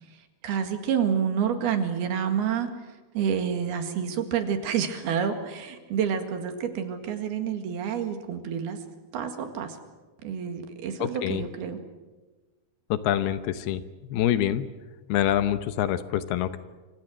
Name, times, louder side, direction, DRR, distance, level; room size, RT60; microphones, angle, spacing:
voice 1, 0.4-2.7 3.1-8.8 9.1-9.8 10.2-11.8, right 7 dB, 75° right, 6 dB, 3.8 m, -28 dB
voice 2, 11.0-11.4 12.9-13.8 14.1-14.7 15.1-16.7, left 11 dB, 75° left, 12 dB, 2.8 m, -26 dB
28.0 x 25.5 x 6.4 m, 1.3 s
omnidirectional pair, 4.7 m